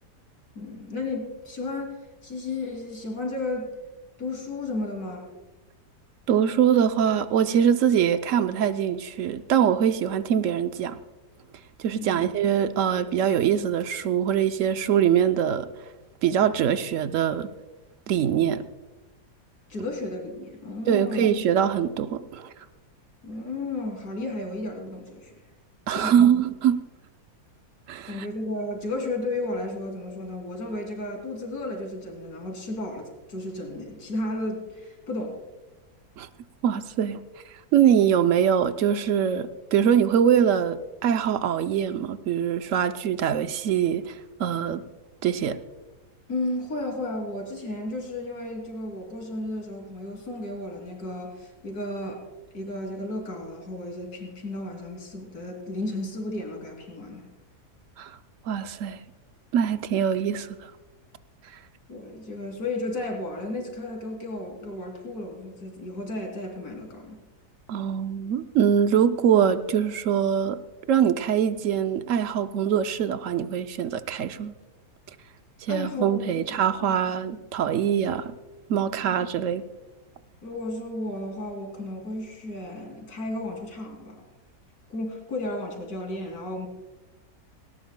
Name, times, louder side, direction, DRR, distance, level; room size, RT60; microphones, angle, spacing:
voice 1, 0.5-3.7 4.2-5.3 11.9-12.2 19.7-21.3 23.2-25.3 25.9-26.3 28.1-35.4 46.3-52.2 52.5-57.2 61.9-67.2 75.7-76.3 76.8-77.0 78.9-79.1 80.4-84.2 84.9-86.7, left 2 dB, 70° left, 3.4 m, -33 dB
voice 2, 6.3-11.0 11.8-15.7 16.2-17.5 18.1-18.6 20.9-22.5 25.9-26.8 27.9-28.3 36.2-36.3 36.6-37.2 37.7-44.8 45.2-45.6 58.0-58.1 58.5-59.0 59.5-60.5 67.7-70.6 70.9-74.5 75.6-78.3 78.7-79.6, right 8 dB, 65° right, 0.8 m, -23 dB
18.5 x 18.0 x 2.2 m
omnidirectional pair, 1.8 m